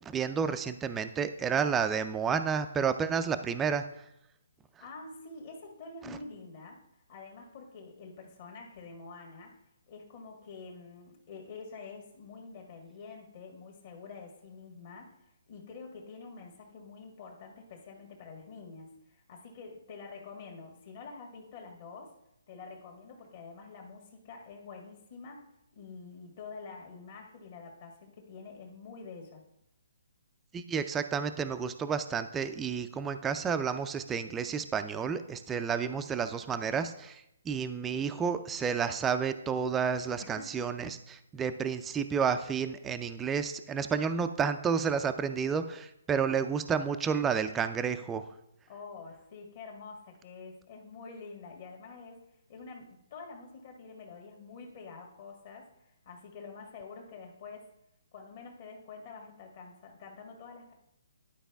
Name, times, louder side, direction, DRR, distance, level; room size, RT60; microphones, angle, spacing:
voice 1, 0.0-4.0 6.0-6.2 30.5-48.3, right 6 dB, 10° right, 9 dB, 0.4 m, -31 dB
voice 2, 4.8-6.7 7.1-9.6 9.9-22.2 22.5-25.5 25.7-29.4 40.2-40.5 48.7-52.2 52.5-57.7 58.1-60.7, left 4 dB, 45° left, 0 dB, 1.6 m, -47 dB
11.0 x 4.7 x 3.4 m, 0.80 s
hypercardioid pair, 155°, 0 cm